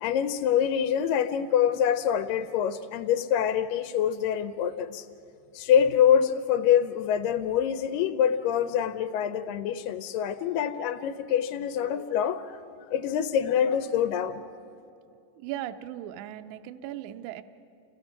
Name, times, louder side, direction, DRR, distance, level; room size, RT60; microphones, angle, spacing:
voice 1, 0.0-5.1 5.5-14.4, left 9 dB, 85° left, 10 dB, 2.3 m, -25 dB
voice 2, 15.4-17.4, right 12 dB, 80° right, 8 dB, 1.9 m, -37 dB
29.5 x 17.0 x 5.9 m, 2.6 s
omnidirectional pair, 3.8 m